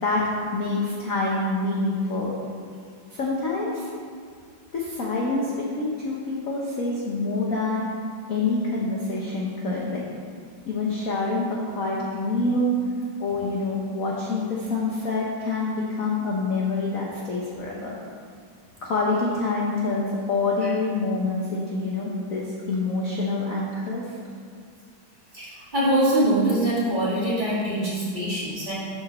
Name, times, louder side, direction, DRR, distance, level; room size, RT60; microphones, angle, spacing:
voice 1, 0.0-2.3 3.1-3.9 4.7-7.9 8.3-10.0 10.7-12.7 13.2-18.0 18.8-24.1, left 3 dB, 50° left, -4 dB, 1.1 m, -26 dB
voice 2, 25.3-28.7, right 1 dB, 20° right, -9 dB, 2.2 m, -23 dB
7.2 x 5.1 x 6.4 m, 2.1 s
omnidirectional pair, 2.3 m